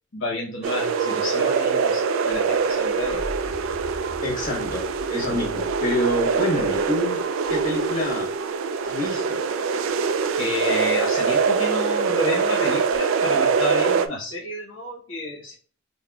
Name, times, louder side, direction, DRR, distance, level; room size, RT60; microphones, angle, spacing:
voice 1, 0.1-3.2 5.3-5.5 10.4-15.5, left 1 dB, 70° left, -2 dB, 0.9 m, -30 dB
sound 1, 0.6-14.1, right 5 dB, 85° right, 0.3 m, -24 dB
sound 2, 2.3-8.2 9.8-10.4 12.9-13.0, equal, 5° left, 1.3 m, -41 dB
voice 2, 4.2-8.3 8.8-9.4, equal, 45° left, -1 dB, 1.5 m, -27 dB
5.5 x 2.1 x 2.3 m, 0.43 s
head